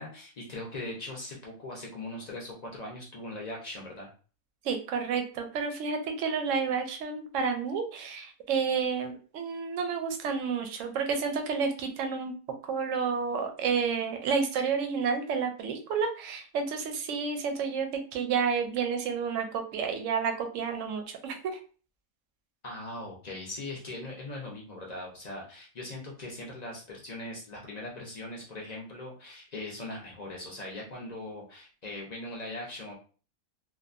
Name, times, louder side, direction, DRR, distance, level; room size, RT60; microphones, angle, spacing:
voice 1, 0.0-4.1 22.6-32.9, left 2 dB, 50° left, -2 dB, 0.5 m, -40 dB
voice 2, 4.6-12.3 12.7-21.6, right 5 dB, 70° right, 5 dB, 0.9 m, -30 dB
2.8 x 2.2 x 2.4 m, 0.38 s
omnidirectional pair, 1.5 m